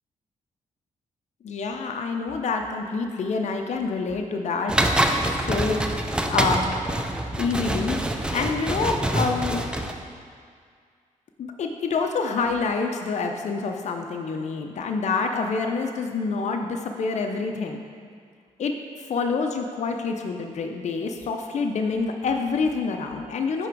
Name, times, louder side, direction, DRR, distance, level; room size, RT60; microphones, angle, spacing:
voice 1, 1.4-4.7 5.2-6.8 7.4-9.7 11.4-17.8 18.6-23.7, left 4 dB, 60° left, 4 dB, 0.5 m, -27 dB
sound 1, 4.7-9.9, right 1 dB, 5° right, 0.5 m, -25 dB
10.0 x 3.4 x 4.6 m, 2.1 s
cardioid pair, 80°, 14 cm